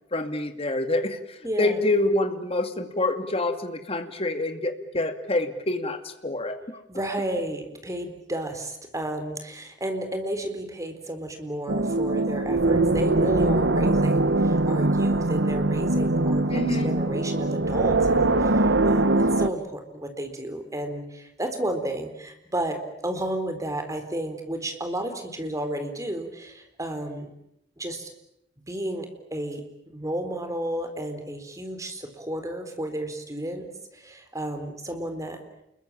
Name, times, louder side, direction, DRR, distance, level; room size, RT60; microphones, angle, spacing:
voice 1, 0.1-6.8 16.5-16.9, left 2 dB, 30° left, 7 dB, 2.4 m, -27 dB
voice 2, 1.4-1.8 6.9-27.3 27.8-28.1 28.7-29.6 29.9-33.7 33.9-35.4, right 1 dB, 20° right, 6 dB, 4.1 m, -32 dB
sound 1, 11.7-19.5, right 2 dB, 70° right, 1.4 m, -22 dB
28.5 x 22.0 x 9.0 m, 0.81 s
head